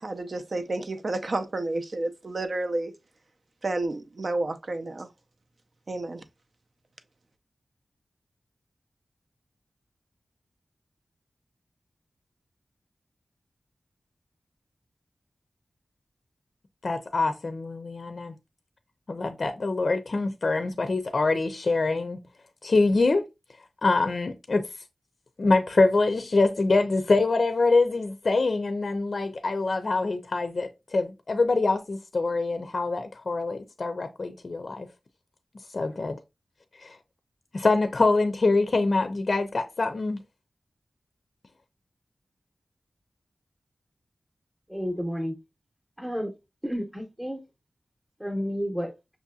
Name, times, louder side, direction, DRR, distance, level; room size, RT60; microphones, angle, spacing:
voice 1, 0.0-2.9 3.6-5.1 5.9-6.2, right 2 dB, 55° right, 0.5 m, -30 dB
voice 2, 16.8-18.3 19.1-22.2 22.6-23.2 23.8-24.7 25.4-34.9 35.7-36.2 36.8-36.9 37.5-40.2, left 3 dB, 60° left, 0.5 m, -25 dB
voice 3, 44.7-45.4 46.0-46.3 46.6-47.4 48.2-48.9, equal, 5° right, 0.8 m, -31 dB
6.0 x 2.7 x 2.3 m
wide cardioid pair, 80°, 0 cm